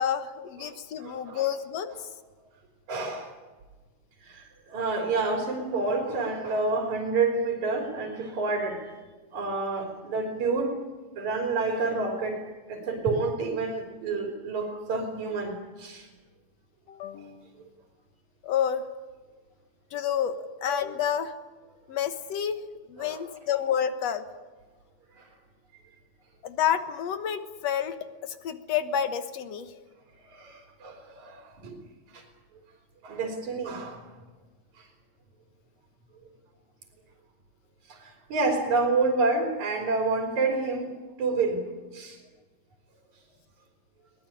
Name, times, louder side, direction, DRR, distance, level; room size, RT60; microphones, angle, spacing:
voice 1, 0.0-1.9 16.9-17.6 18.4-18.9 19.9-21.3 21.9-22.6 22.9-24.2 26.4-29.7, left 9 dB, 65° left, 10 dB, 2.4 m, -29 dB
voice 2, 0.6-1.5 2.9-3.3 4.2-8.9 9.3-10.8 11.2-16.1 23.0-23.2 25.2-25.3 30.3-31.8 32.1-32.2 33.0-34.0 34.8-34.9 37.9-40.9 41.2-41.6 41.9-42.2, right 3 dB, 75° right, 2 dB, 4.6 m, -29 dB
21.5 x 20.0 x 9.9 m, 1.3 s
omnidirectional pair, 3.3 m